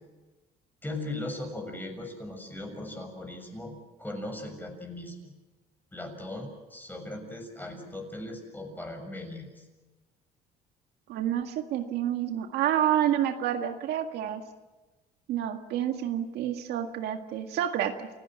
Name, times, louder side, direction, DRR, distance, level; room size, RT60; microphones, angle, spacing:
voice 1, 0.8-3.7 4.0-5.2 5.9-9.6, left 1 dB, 10° left, 4 dB, 6.8 m, -38 dB
voice 2, 11.1-14.4 15.3-18.1, right 10 dB, 80° right, 5 dB, 1.9 m, -29 dB
29.5 x 16.5 x 7.7 m, 1.2 s
cardioid pair, 110°, 17 cm